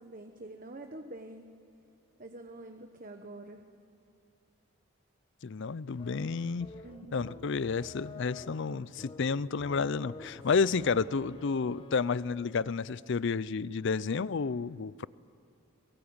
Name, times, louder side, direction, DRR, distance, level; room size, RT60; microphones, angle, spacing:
voice 1, 0.0-1.4 2.2-3.6 6.8-7.4 10.4-10.5 11.1-11.3, right 2 dB, 40° right, 6 dB, 1.0 m, -46 dB
voice 2, 5.4-6.7 7.1-15.1, left 5 dB, 60° left, 19 dB, 0.5 m, -31 dB
sound 1, 6.0-12.4, left 3 dB, 25° left, 1.3 m, -49 dB
23.5 x 22.0 x 8.8 m, 2.6 s
head